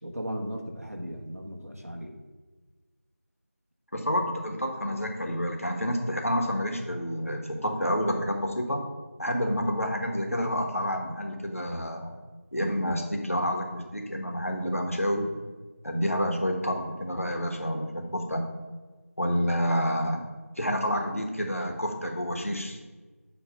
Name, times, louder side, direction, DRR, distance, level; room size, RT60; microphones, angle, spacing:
voice 1, 0.0-2.1, equal, 70° right, 1 dB, 1.4 m, -36 dB
voice 2, 3.9-8.8 9.2-12.1 12.5-15.3 15.8-18.4 19.2-20.2 20.6-22.8, equal, 65° left, 3 dB, 1.3 m, -29 dB
8.5 x 3.2 x 5.5 m, 1.3 s
figure-of-eight pair, 180°, 8 cm